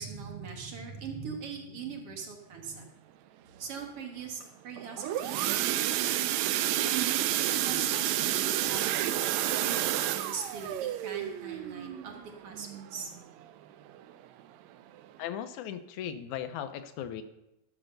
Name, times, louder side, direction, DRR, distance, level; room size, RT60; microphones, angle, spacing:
voice 1, 0.0-2.9 3.6-6.4 6.8-9.2 9.6-12.1 12.4-13.1, right 6 dB, 55° right, 2 dB, 2.1 m, -41 dB
sound 1, 4.8-13.4 13.9-14.1 14.4-14.5 15.0-15.1, right 13 dB, 80° right, 1.8 m, -30 dB
voice 2, 15.2-17.2, left 9 dB, 85° left, 10 dB, 2.2 m, -37 dB
12.0 x 6.1 x 6.5 m, 0.89 s
omnidirectional pair, 3.4 m